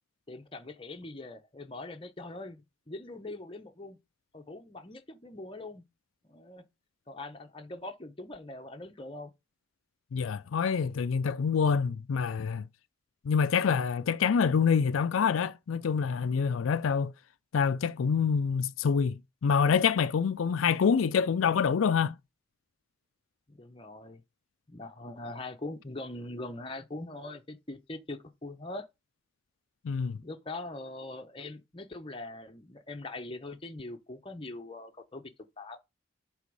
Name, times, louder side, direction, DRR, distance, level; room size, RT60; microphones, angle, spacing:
voice 1, 0.3-4.0 4.3-5.8 6.2-6.6 7.1-9.3 23.5-24.2 24.7-28.9 30.2-35.8, left 2 dB, 25° left, 0.8 m, -42 dB
voice 2, 10.1-12.7 13.2-17.1 17.5-22.1 29.8-30.2, left 6 dB, 80° left, 0.4 m, -26 dB
8.1 x 3.5 x 5.3 m
head